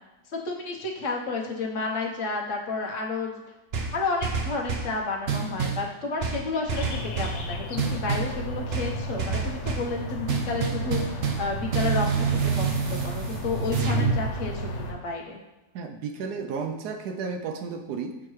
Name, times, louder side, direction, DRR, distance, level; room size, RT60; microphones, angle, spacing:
voice 1, 0.3-3.4 3.9-15.4, left 3 dB, 50° left, -1 dB, 1.1 m, -31 dB
sound 1, 3.7-4.9 5.3-5.9 6.2-7.4 7.8-8.3 8.7-9.9 10.3-11.5 11.7-14.2, right 5 dB, 55° right, 0.7 m, -28 dB
sound 2, 6.7-14.9, equal, 90° left, 1.5 m, -33 dB
voice 2, 15.7-18.2, right 5 dB, 75° right, 5 dB, 1.0 m, -33 dB
6.4 x 5.7 x 3.1 m, 1.1 s
omnidirectional pair, 1.9 m